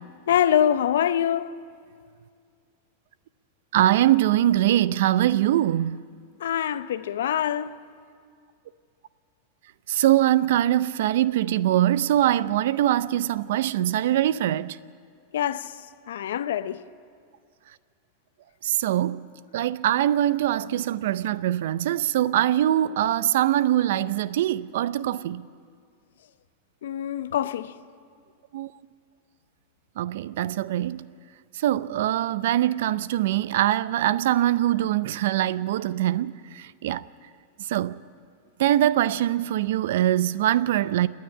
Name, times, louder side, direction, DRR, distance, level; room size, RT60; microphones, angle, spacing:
voice 1, 0.3-1.5 6.4-7.7 15.3-15.7 16.1-16.8 26.8-27.7, left 10 dB, 75° left, 0.7 m, -24 dB
voice 2, 3.7-6.0 9.9-14.8 18.6-19.2 19.5-25.4 28.5-28.7 30.0-31.1 31.5-37.0 37.7-38.0 38.6-41.1, right 12 dB, 70° right, 0.5 m, -23 dB
27.5 x 9.5 x 10.0 m
hypercardioid pair, 105°, 0 cm